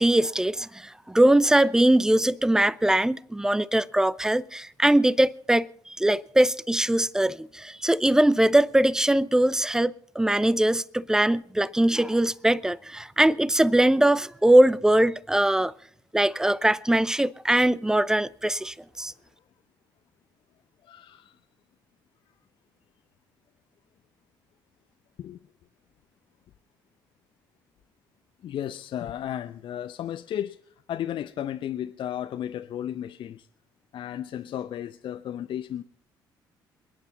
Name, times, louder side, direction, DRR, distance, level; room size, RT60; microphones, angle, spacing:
voice 1, 0.0-15.7 16.1-19.1, right 1 dB, 5° right, 0.7 m, -21 dB
voice 2, 20.8-21.4 25.2-25.4 28.4-30.6 30.9-33.5 33.9-35.8, left 10 dB, 50° left, 0.7 m, -34 dB
27.0 x 9.9 x 4.0 m
figure-of-eight pair, 45°, 11 cm